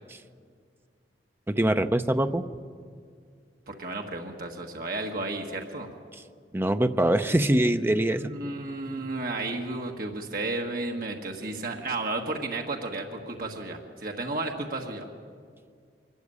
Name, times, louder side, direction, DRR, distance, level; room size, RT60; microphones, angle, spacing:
voice 1, 1.5-2.4 6.5-8.3, right 1 dB, 15° right, 9 dB, 0.6 m, -23 dB
voice 2, 3.7-5.9 8.1-15.0, right 2 dB, 55° right, 2 dB, 1.6 m, -33 dB
23.5 x 13.5 x 9.6 m, 2.1 s
head